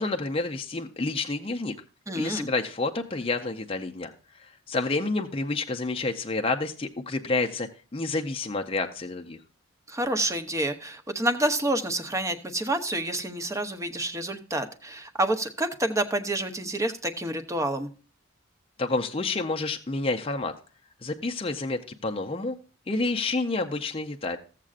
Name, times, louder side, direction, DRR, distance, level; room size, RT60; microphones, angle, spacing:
voice 1, 0.0-1.7 2.1-9.4 18.8-20.5 21.0-22.6 22.9-24.4, left 3 dB, 25° left, 4 dB, 0.5 m, -29 dB
voice 2, 2.1-2.5 9.9-17.9, right 1 dB, 15° right, 8 dB, 0.8 m, -28 dB
15.5 x 7.4 x 2.4 m, 0.37 s
head